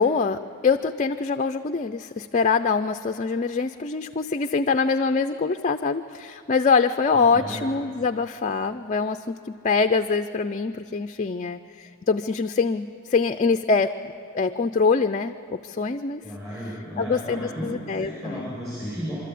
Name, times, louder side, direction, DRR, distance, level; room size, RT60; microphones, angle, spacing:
voice 1, 0.0-9.4 9.6-13.9 14.3-16.2 17.0-18.5, left 4 dB, 35° left, 8 dB, 0.5 m, -24 dB
voice 2, 7.1-7.6 16.2-17.7 17.9-19.2, equal, 15° right, -8 dB, 6.8 m, -34 dB
25.5 x 13.5 x 8.4 m, 2.7 s
head